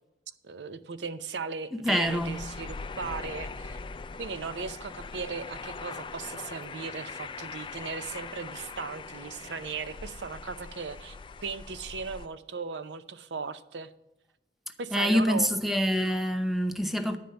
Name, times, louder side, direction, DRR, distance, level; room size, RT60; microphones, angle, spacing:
voice 1, 0.4-3.8 4.2-13.9 14.8-15.5, right 5 dB, 75° right, 0.6 m, -37 dB
voice 2, 1.7-2.4 14.9-17.2, equal, ahead, 0.8 m, -26 dB
sound 1, 2.0-12.3, left 4 dB, 30° left, 0.3 m, -41 dB
10.0 x 5.2 x 7.8 m
head